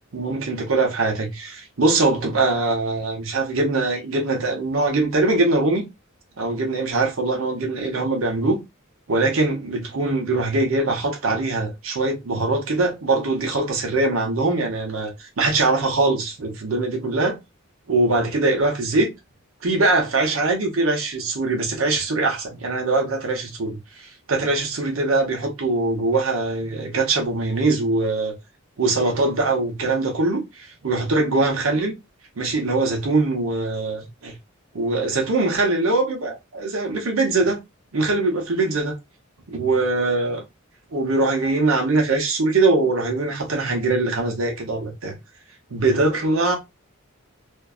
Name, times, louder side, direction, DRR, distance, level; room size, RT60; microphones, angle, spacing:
voice 1, 0.1-5.8 6.4-8.6 9.1-17.4 17.9-19.1 19.6-28.3 28.8-32.0 32.4-34.4 34.7-37.6 37.9-38.9 39.5-40.4 40.9-45.2 45.7-46.6, right 2 dB, 75° right, 0.8 m, -22 dB
2.5 x 2.2 x 2.3 m
head